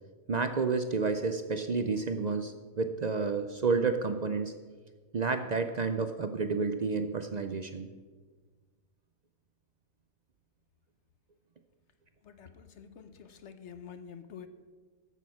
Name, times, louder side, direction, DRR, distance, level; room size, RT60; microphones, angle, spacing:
voice 1, 0.3-4.5 5.1-7.9, right 4 dB, 70° right, 8 dB, 0.4 m, -30 dB
voice 2, 12.2-14.5, left 7 dB, 60° left, 10 dB, 0.9 m, -48 dB
14.0 x 6.2 x 5.8 m, 1.4 s
omnidirectional pair, 1.5 m